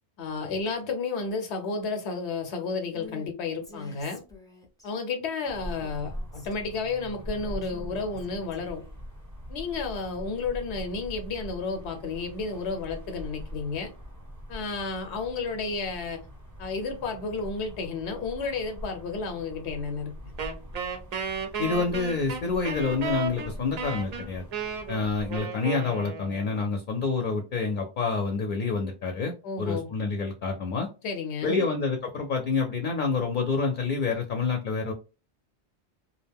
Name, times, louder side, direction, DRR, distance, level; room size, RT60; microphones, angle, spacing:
voice 1, 0.2-4.2 4.8-8.8 9.5-13.9 14.5-16.2 16.6-20.1 29.4-29.9 31.0-31.6, left 4 dB, 90° left, 0.9 m, -32 dB
Female speech woman speaking, 2.9-3.3 3.6-4.9 5.8-6.9 7.4-9.0, left 4 dB, 5° left, 0.3 m, -48 dB
sound 1, 5.4-25.4, equal, 20° right, 0.8 m, -42 dB
Wind instrument woodwind instrument, 20.4-26.7, right 4 dB, 55° right, 0.5 m, -34 dB
voice 2, 21.6-24.4 24.9-30.9 31.4-34.9, left 4 dB, 60° left, 0.6 m, -28 dB
2.4 x 2.1 x 3.3 m
omnidirectional pair, 1.1 m